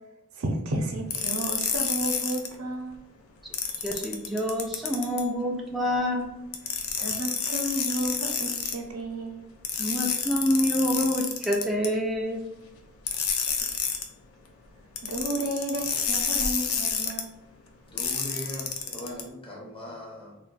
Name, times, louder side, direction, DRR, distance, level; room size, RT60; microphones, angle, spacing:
voice 1, 0.3-3.0 7.0-9.5 13.3-13.8 15.0-17.4, right 1 dB, 90° right, 2 dB, 0.6 m, -32 dB
sound 1, 1.1-2.5 3.5-5.2 6.5-8.8 9.6-11.9 13.1-14.1 15.0-17.2 18.0-19.2, left 7 dB, 80° left, 0.5 m, -29 dB
voice 2, 3.8-6.3 9.8-12.4, equal, ahead, -2 dB, 0.4 m, -27 dB
voice 3, 17.9-20.4, left 1 dB, 25° left, -1 dB, 0.7 m, -39 dB
2.5 x 2.2 x 3.8 m, 0.93 s
head